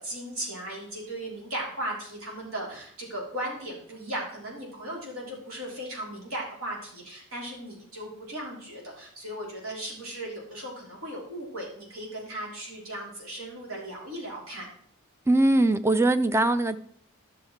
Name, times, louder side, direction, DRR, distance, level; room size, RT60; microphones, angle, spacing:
voice 1, 0.0-14.7, right 1 dB, 70° right, -2 dB, 3.5 m, -37 dB
voice 2, 15.3-16.8, right 2 dB, 10° right, 12 dB, 0.4 m, -21 dB
11.5 x 6.5 x 4.5 m, 0.62 s
head